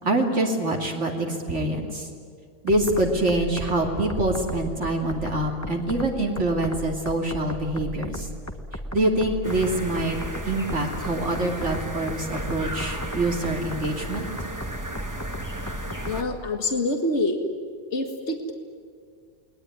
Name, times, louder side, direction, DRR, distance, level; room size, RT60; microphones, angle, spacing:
voice 1, 0.0-2.1 2.6-8.3 8.9-10.2 10.4-14.3, right 1 dB, 75° right, 0 dB, 3.3 m, -25 dB
sound 1, 2.7-16.3, equal, 15° left, 1.4 m, -36 dB
sound 2, 9.4-16.2, right 1 dB, 15° right, 1.7 m, -35 dB
voice 2, 16.1-17.4 17.9-18.5, left 2 dB, 65° left, 4 dB, 2.2 m, -26 dB
29.5 x 20.5 x 9.6 m, 2.2 s
omnidirectional pair, 1.2 m